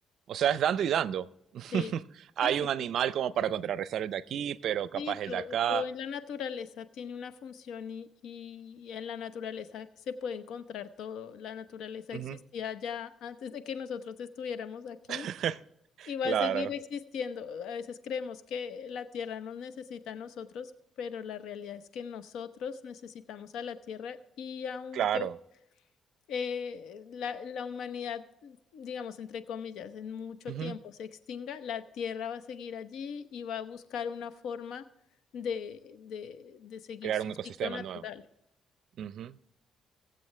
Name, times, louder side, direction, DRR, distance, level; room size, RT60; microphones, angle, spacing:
voice 1, 0.3-1.3 1.5-2.0 2.4-5.8 12.1-12.4 15.1-15.6 16.0-16.7 24.9-25.3 30.5-30.7 37.0-38.0 39.0-39.4, right 10 dB, 70° right, 0.5 m, -30 dB
voice 2, 4.9-15.3 16.0-20.7 21.0-25.3 26.3-34.8 35.3-37.2 37.6-38.2, left 7 dB, 85° left, 0.9 m, -38 dB
19.0 x 7.8 x 3.3 m
cardioid pair, 90°, 0 cm